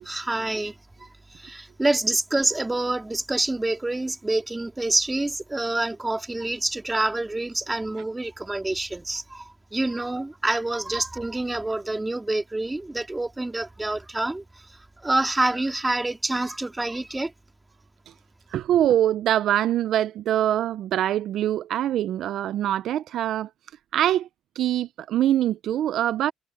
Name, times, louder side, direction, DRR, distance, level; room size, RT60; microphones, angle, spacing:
voice 1, 0.1-0.7 1.4-9.4 9.7-14.4 15.0-17.3, right 2 dB, 15° right, 2.5 m, -27 dB
voice 2, 18.5-23.5 23.9-24.3 24.6-26.3, right 11 dB, 75° right, 0.5 m, -23 dB
cardioid pair, 90°, 0 cm